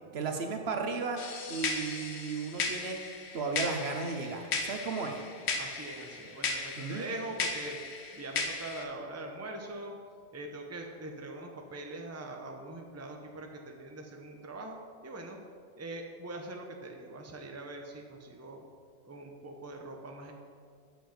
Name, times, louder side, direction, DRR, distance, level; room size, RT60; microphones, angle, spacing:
voice 1, 0.1-1.2 1.5-3.0 3.3-5.2 6.8-7.0, right 4 dB, 65° right, 4 dB, 1.1 m, -34 dB
sound 1, 1.2-8.8, left 4 dB, 70° left, 1.2 m, -36 dB
voice 2, 5.6-7.8 8.1-9.9 10.3-15.4 15.7-18.6 19.0-20.3, right 2 dB, 15° right, 2 dB, 0.7 m, -42 dB
7.3 x 7.0 x 6.0 m, 2.1 s
omnidirectional pair, 1.2 m